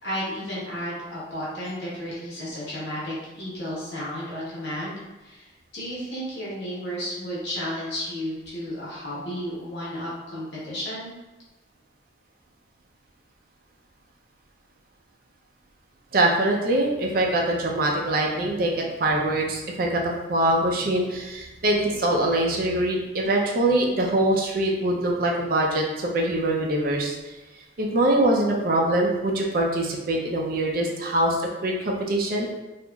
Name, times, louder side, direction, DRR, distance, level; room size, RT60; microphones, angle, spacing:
voice 1, 0.0-5.5 5.7-11.1, equal, 65° left, -7 dB, 1.0 m, -33 dB
voice 2, 16.1-27.3 27.8-32.5, right 1 dB, 50° right, 0 dB, 0.4 m, -23 dB
2.9 x 2.4 x 2.2 m, 1.1 s
head